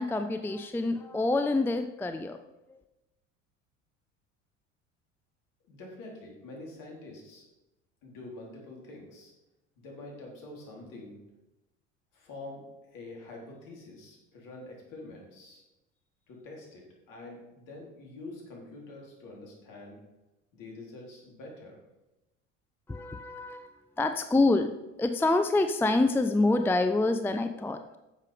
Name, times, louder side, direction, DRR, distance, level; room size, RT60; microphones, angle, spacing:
voice 1, 0.0-2.4 2.7-2.8 22.9-24.7 25.0-28.0, left 2 dB, 5° left, 8 dB, 0.5 m, -27 dB
voice 2, 5.7-7.4 8.0-9.3 9.8-11.2 12.1-15.6 16.3-20.0 20.5-21.8, left 2 dB, 55° left, -1 dB, 3.9 m, -46 dB
10.0 x 7.5 x 5.1 m, 0.99 s
figure-of-eight pair, 65°, 38 cm